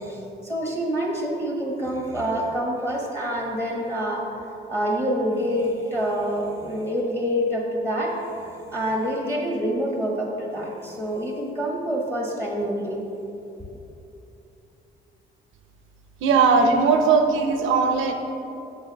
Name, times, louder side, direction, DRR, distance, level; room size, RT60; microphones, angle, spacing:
voice 1, 0.0-4.2 4.7-13.0, equal, 10° left, -2 dB, 1.1 m, -27 dB
voice 2, 16.2-18.1, right 4 dB, 85° right, 5 dB, 0.7 m, -19 dB
7.2 x 4.0 x 5.2 m, 2.9 s
cardioid pair, 90°, 20 cm